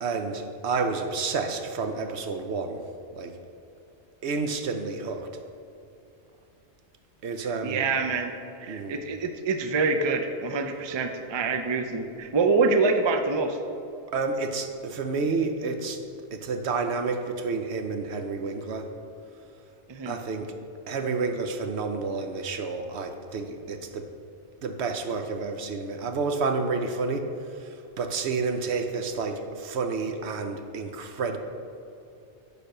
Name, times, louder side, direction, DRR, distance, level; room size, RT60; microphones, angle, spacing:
voice 1, 0.0-2.8 3.1-3.3 4.2-5.3 7.2-7.9 8.7-9.0 14.1-16.0 16.3-18.9 20.1-20.5 20.9-24.1 24.6-31.4, right 4 dB, 70° right, 6 dB, 1.0 m, -30 dB
voice 2, 7.6-8.3 8.6-13.6 19.9-20.1, right 4 dB, 35° right, 6 dB, 0.5 m, -25 dB
10.0 x 4.5 x 6.7 m, 2.7 s
omnidirectional pair, 1.2 m